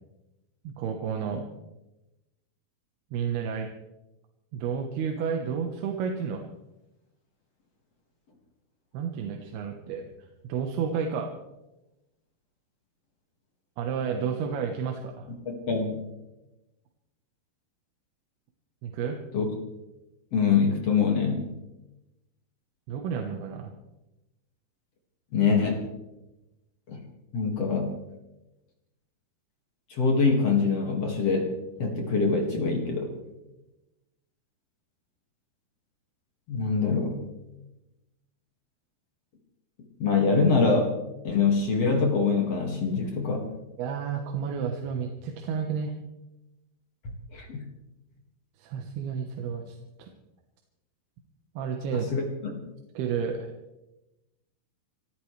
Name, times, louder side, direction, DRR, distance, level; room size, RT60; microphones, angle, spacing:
voice 1, 0.6-1.5 3.1-3.7 4.5-6.4 8.9-10.0 10.5-11.3 13.8-15.3 18.8-19.2 22.9-23.7 43.8-45.9 48.6-50.1 51.6-52.1 52.9-53.5, right 6 dB, 75° right, 2 dB, 3.0 m, -31 dB
voice 2, 15.5-16.0 19.3-19.5 20.3-21.5 25.3-25.8 26.9-27.0 27.3-27.9 29.9-31.5 31.8-33.1 36.5-37.2 40.0-40.9 41.2-43.5 47.3-47.6 51.9-52.5, left 4 dB, 45° left, 1 dB, 2.6 m, -24 dB
27.5 x 13.5 x 3.3 m, 0.99 s
omnidirectional pair, 4.9 m